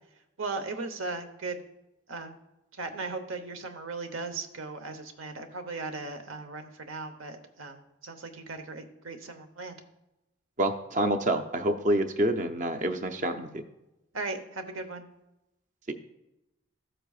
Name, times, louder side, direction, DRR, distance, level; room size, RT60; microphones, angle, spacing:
voice 1, 0.4-1.6 2.1-2.4 2.7-9.8 14.1-15.1, right 3 dB, 75° right, 7 dB, 1.0 m, -37 dB
voice 2, 10.6-13.6 15.9-16.0, right 1 dB, 35° right, 8 dB, 0.6 m, -27 dB
14.0 x 7.7 x 2.4 m, 0.92 s
head